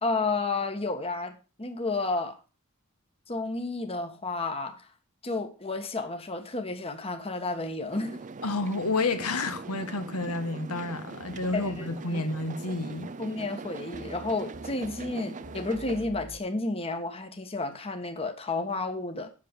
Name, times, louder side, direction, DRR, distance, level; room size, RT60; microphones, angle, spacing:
voice 1, 0.0-2.4 3.3-4.9 5.2-8.2 11.5-12.2 13.2-19.3, left 3 dB, 25° left, 1.4 m, -31 dB
sound 1, 7.9-16.0, right 4 dB, 35° right, 0.5 m, -42 dB
voice 2, 8.4-13.1, left 3 dB, 80° left, 1.5 m, -30 dB
sound 2, 11.2-16.4, right 1 dB, 60° right, 1.9 m, -49 dB
8.6 x 7.0 x 7.2 m
head